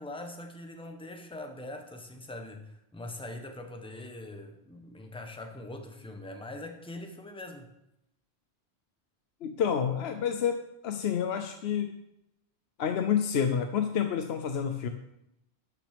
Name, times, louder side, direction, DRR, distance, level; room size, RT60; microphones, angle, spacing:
voice 1, 0.0-7.7, left 1 dB, 5° left, 4 dB, 1.0 m, -42 dB
voice 2, 9.4-11.9 12.8-14.9, left 8 dB, 75° left, 7 dB, 0.9 m, -29 dB
12.0 x 6.1 x 5.1 m, 0.85 s
omnidirectional pair, 1.1 m